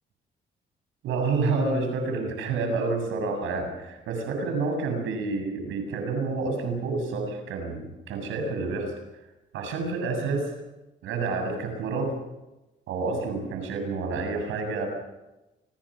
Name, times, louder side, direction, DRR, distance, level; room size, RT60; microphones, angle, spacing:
voice 1, 1.0-8.9 9.5-10.5 11.0-12.1 12.9-14.9, right 3 dB, 90° right, 5 dB, 7.5 m, -29 dB
28.5 x 22.0 x 6.4 m, 1.0 s
cardioid pair, 90°, 20 cm